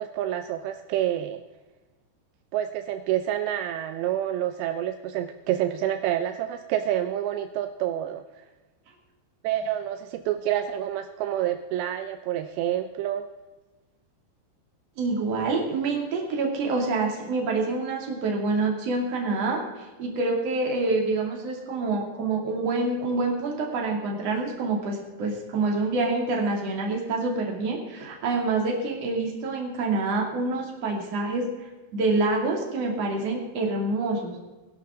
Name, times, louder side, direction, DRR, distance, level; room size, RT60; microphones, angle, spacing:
voice 1, 0.0-1.4 2.5-8.4 9.4-13.3, right 11 dB, 80° right, 8 dB, 2.8 m, -28 dB
voice 2, 15.0-34.5, right 3 dB, 40° right, 0 dB, 3.2 m, -27 dB
20.0 x 11.5 x 3.8 m, 1.2 s
omnidirectional pair, 5.1 m